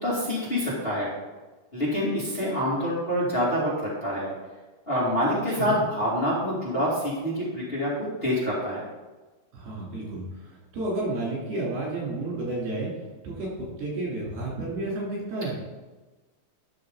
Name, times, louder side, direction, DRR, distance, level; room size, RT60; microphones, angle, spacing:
voice 1, 0.0-1.1 1.7-3.7 4.0-4.3 4.9-7.9 8.2-8.8, equal, 20° left, -7 dB, 2.1 m, -26 dB
voice 2, 9.5-10.2 10.7-12.9 13.2-13.5 13.8-15.5, right 2 dB, 85° right, -5 dB, 5.2 m, -31 dB
12.0 x 6.4 x 3.9 m, 1.2 s
omnidirectional pair, 4.4 m